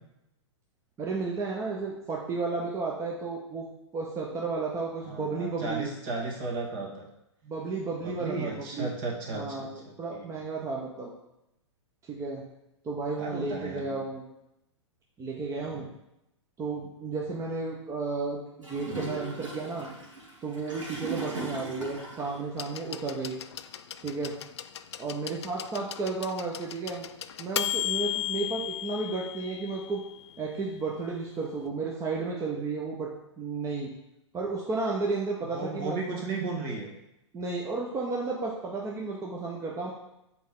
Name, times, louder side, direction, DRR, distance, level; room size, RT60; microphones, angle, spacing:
voice 1, 1.0-3.7 3.9-5.9 7.4-8.9 9.3-11.1 12.1-12.4 12.8-14.2 15.2-15.9 16.6-19.9 20.4-23.4 24.0-24.3 25.0-27.1 27.4-30.0 30.4-33.1 33.4-33.9 34.3-36.0 37.3-39.9, right 3 dB, 20° right, -2 dB, 0.9 m, -33 dB
voice 2, 5.1-7.1 8.0-10.3 13.2-14.0 15.6-15.9 35.5-36.9, right 3 dB, 45° right, -1 dB, 1.9 m, -35 dB
Gurgling / Toilet flush, 18.6-22.4, right 3 dB, 85° right, 2.5 m, -38 dB
sound 1, 22.6-30.3 31.5-31.6, left 12 dB, 60° left, 0.4 m, -35 dB
7.3 x 4.6 x 3.7 m, 0.86 s
figure-of-eight pair, 110°, 16 cm